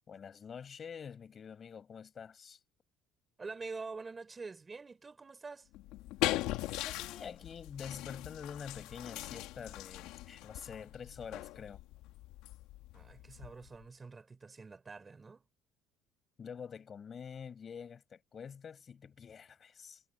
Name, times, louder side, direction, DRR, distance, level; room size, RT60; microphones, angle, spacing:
voice 1, 0.1-2.6 6.8-11.8 16.4-20.0, left 7 dB, 30° left, 5.3 m, -47 dB
voice 2, 3.4-5.7 12.9-15.4, right 4 dB, 20° right, 4.9 m, -46 dB
sound 1, 5.7-13.8, left 17 dB, 80° left, 1.9 m, -40 dB
cardioid pair, 150°, 0 cm